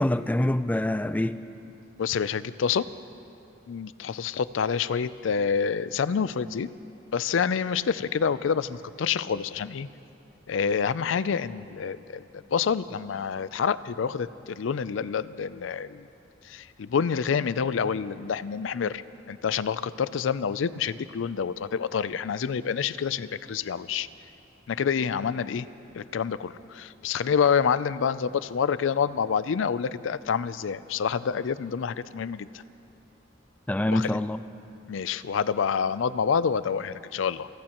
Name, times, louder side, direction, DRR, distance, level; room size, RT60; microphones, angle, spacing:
voice 1, 0.0-1.4 33.7-34.4, left 1 dB, 10° left, 12 dB, 0.3 m, -25 dB
voice 2, 2.0-2.9 3.7-6.7 7.1-9.9 10.5-16.1 16.5-24.1 24.7-25.7 25.9-32.5 33.9-34.2 34.9-37.5, left 6 dB, 85° left, 16 dB, 0.4 m, -27 dB
29.0 x 15.0 x 3.0 m, 2.7 s
head